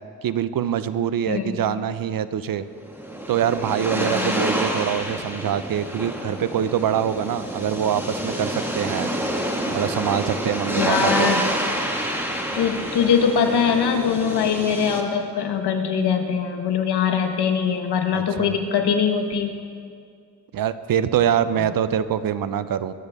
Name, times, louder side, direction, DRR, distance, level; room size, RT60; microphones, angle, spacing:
voice 1, 0.2-2.7 3.3-9.1 9.7-11.3 18.1-18.5 20.5-22.9, right 9 dB, 60° right, 14 dB, 0.7 m, -24 dB
voice 2, 1.3-1.6 3.9-4.3 10.8-11.5 12.5-19.5, left 7 dB, 85° left, 5 dB, 1.4 m, -22 dB
sound 1, 2.8-15.0, equal, 5° right, 1.8 m, -28 dB
20.5 x 13.5 x 3.6 m, 2.2 s
cardioid pair, 105°, 39 cm